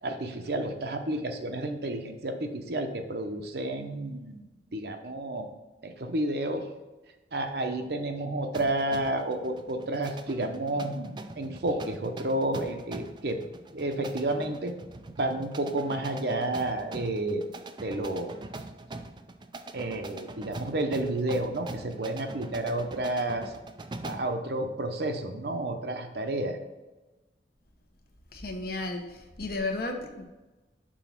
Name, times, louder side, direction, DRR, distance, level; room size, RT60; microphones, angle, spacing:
voice 1, 0.0-5.5 5.8-6.7 7.3-13.4 13.7-14.8 15.2-17.4 17.8-18.3 19.7-23.5 24.0-26.6, right 1 dB, 60° right, 5 dB, 0.8 m, -31 dB
sound 1, 8.5-24.4, right 2 dB, 25° right, 0.4 m, -43 dB
voice 2, 28.3-30.2, left 2 dB, 55° left, 3 dB, 1.0 m, -33 dB
6.3 x 4.0 x 5.8 m, 1.1 s
head